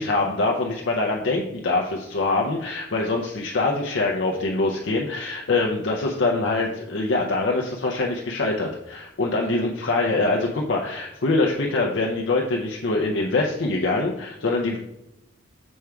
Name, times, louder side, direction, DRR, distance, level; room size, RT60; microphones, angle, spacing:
voice 1, 0.0-14.8, left 3 dB, 70° left, -1 dB, 0.6 m, -24 dB
6.3 x 3.5 x 4.6 m, 0.85 s
head